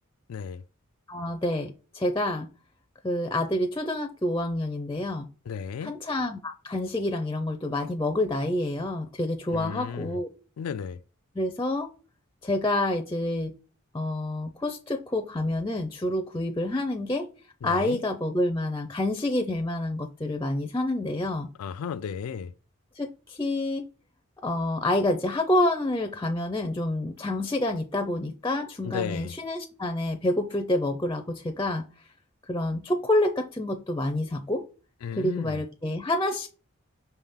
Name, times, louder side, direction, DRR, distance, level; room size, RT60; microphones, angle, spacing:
voice 1, 0.3-0.6 5.5-6.0 9.5-10.2 10.6-11.0 17.6-18.0 21.6-22.5 28.8-29.4 35.0-35.6, left 7 dB, 90° left, 0.4 m, -34 dB
voice 2, 1.1-2.5 3.0-5.3 5.8-10.3 11.4-11.9 12.4-13.6 13.9-17.3 17.6-21.5 23.0-23.9 24.4-31.9 32.5-34.6 35.1-36.5, left 1 dB, 15° left, 0.4 m, -28 dB
5.6 x 3.5 x 5.6 m
head